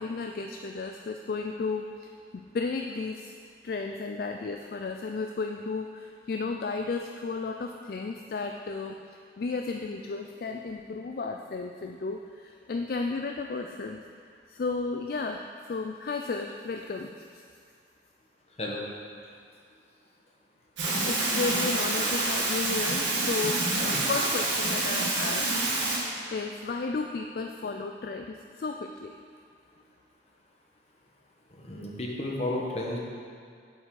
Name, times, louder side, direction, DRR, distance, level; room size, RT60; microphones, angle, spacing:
voice 1, 0.0-3.3 3.6-14.0 14.5-17.4 20.9-29.2, left 4 dB, 50° left, 4 dB, 0.3 m, -34 dB
sound 1, 20.8-26.0, right 2 dB, 80° right, 1.9 m, -27 dB
voice 2, 31.5-33.0, left 1 dB, 35° left, -2 dB, 1.2 m, -32 dB
8.1 x 7.2 x 4.7 m, 2.2 s
head